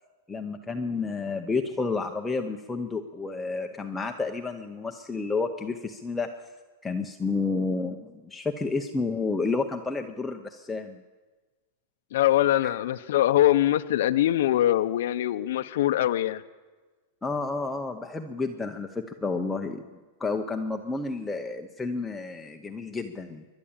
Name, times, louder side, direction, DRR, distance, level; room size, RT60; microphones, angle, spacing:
voice 1, 0.3-6.3 6.8-11.0 12.6-12.7 17.2-19.9 20.2-23.5, left 3 dB, 5° left, 3 dB, 0.7 m, -30 dB
voice 2, 12.1-16.4, left 13 dB, 65° left, 11 dB, 0.6 m, -23 dB
27.0 x 11.5 x 8.8 m, 1.3 s
supercardioid pair, 170°, 0 cm